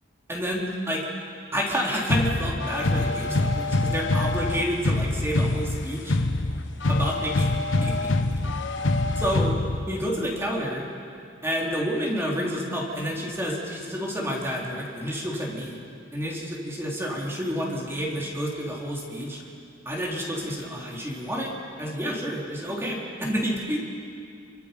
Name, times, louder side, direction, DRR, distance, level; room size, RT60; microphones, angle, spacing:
voice 1, 0.3-1.1 1.5-6.2 6.9-7.5 7.8-8.3 9.2-9.6 9.9-10.9 11.4-15.8 16.1-19.4 19.9-21.5 21.8-23.8, equal, 15° right, -3 dB, 3.7 m, -29 dB
sound 1, 2.1-10.1, left 2 dB, 85° left, 1.2 m, -25 dB
sound 2, 2.6-9.4, left 4 dB, 65° left, 1.1 m, -34 dB
28.5 x 23.5 x 5.4 m, 2.4 s
head